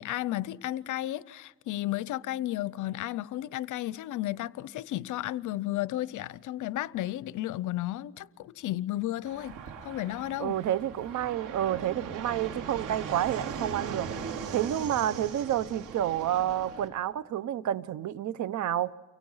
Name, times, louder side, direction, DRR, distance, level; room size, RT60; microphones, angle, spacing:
voice 1, 0.0-10.6, left 14 dB, 80° left, 0.7 m, -33 dB
Fixed-wing aircraft airplane, 9.3-16.9, right 6 dB, 90° right, 3.5 m, -39 dB
voice 2, 10.4-14.2 14.5-18.9, right 11 dB, 70° right, 0.9 m, -29 dB
29.5 x 24.0 x 5.7 m
cardioid pair, 90°, 30 cm